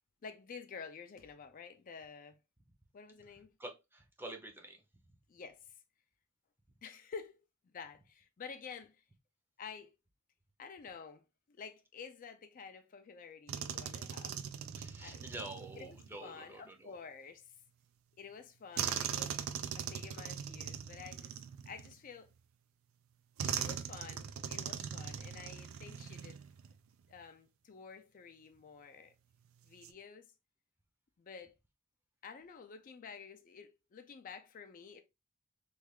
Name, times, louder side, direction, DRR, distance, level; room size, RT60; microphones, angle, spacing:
voice 1, 0.2-2.4 2.9-3.5 5.3-5.8 6.8-7.4 7.6-9.0 9.6-9.9 10.6-14.3 15.0-15.2 15.8-17.6 18.2-19.4 19.7-21.3 21.7-22.3 23.4-26.4 27.1-29.1 29.6-30.3 31.2-31.5 32.2-35.0, left 5 dB, 40° left, 0.4 m, -50 dB
voice 2, 3.6-5.2 14.7-17.0, right 1 dB, 10° right, 0.6 m, -48 dB
sound 1, 13.5-16.2 18.8-22.3 23.4-26.8 27.0-27.2 29.6-29.9, right 8 dB, 85° right, 0.4 m, -40 dB
3.2 x 2.4 x 3.4 m
head